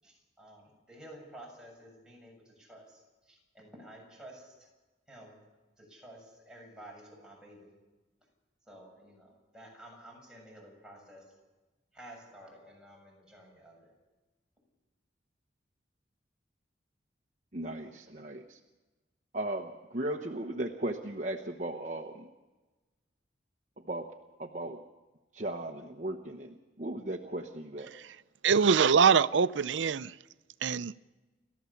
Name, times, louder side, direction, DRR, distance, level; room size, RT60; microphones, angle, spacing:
voice 1, 0.0-3.0 3.3-4.7 5.1-5.4 5.8-7.7 8.7-11.2 11.9-13.9, right 1 dB, 5° right, 7.2 m, -52 dB
voice 2, 17.5-18.6 19.3-22.3 23.8-24.1 24.4-24.8 25.3-27.9, right 1 dB, 40° right, 1.1 m, -37 dB
voice 3, 28.4-30.1 30.6-30.9, right 6 dB, 90° right, 0.6 m, -23 dB
29.5 x 13.5 x 7.2 m
head